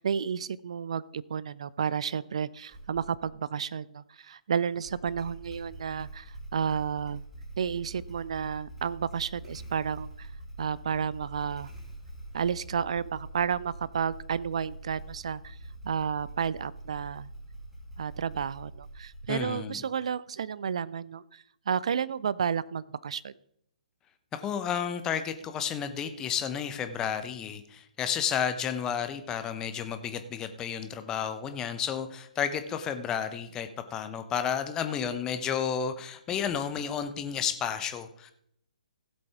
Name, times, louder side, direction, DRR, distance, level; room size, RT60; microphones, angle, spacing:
voice 1, 0.0-7.2 7.6-10.3 10.6-11.7 12.3-15.6 15.8-17.3 18.0-23.3, right 7 dB, 50° right, 19 dB, 0.5 m, -31 dB
Motorcycle / Engine starting, 2.7-3.4 4.7-19.6, right 1 dB, 5° right, 3.3 m, -45 dB
voice 2, 19.3-19.8 24.3-38.3, left 8 dB, 15° left, 9 dB, 0.8 m, -32 dB
16.0 x 7.9 x 3.5 m, 0.72 s
figure-of-eight pair, 130°, 4 cm